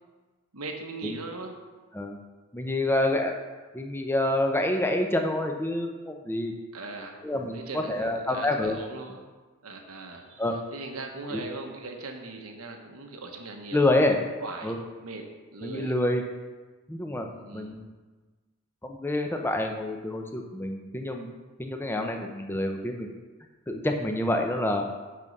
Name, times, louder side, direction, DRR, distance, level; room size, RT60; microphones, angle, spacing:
voice 1, 0.5-1.6 6.7-7.2 7.5-9.2 9.6-10.5 10.7-14.1 14.4-15.9 17.3-17.8, right 3 dB, 90° right, 3 dB, 1.1 m, -40 dB
voice 2, 2.5-3.3 3.7-6.5 7.2-8.8 10.4-10.6 11.3-11.4 13.7-14.2 14.6-14.8 15.6-16.2 16.9-17.3 17.5-17.8 18.8-21.3 21.6-23.1 23.7-24.8, left 1 dB, 10° left, 3 dB, 0.7 m, -27 dB
6.9 x 6.1 x 5.3 m, 1.3 s
head